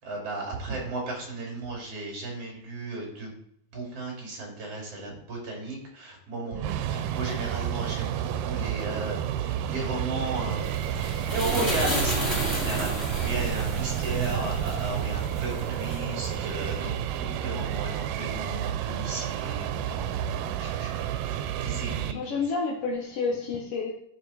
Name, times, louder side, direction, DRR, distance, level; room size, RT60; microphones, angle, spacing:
voice 1, 0.0-3.3 3.7-22.3, right 2 dB, 45° right, -1 dB, 4.0 m, -35 dB
sound 1, 6.5-22.1, right 10 dB, 85° right, 2.2 m, -30 dB
sound 2, 10.3-17.0, right 1 dB, 10° left, 3.6 m, -32 dB
voice 2, 14.1-14.5 22.1-23.9, left 4 dB, 60° left, -3 dB, 1.8 m, -30 dB
12.5 x 5.2 x 4.3 m, 0.68 s
omnidirectional pair, 3.8 m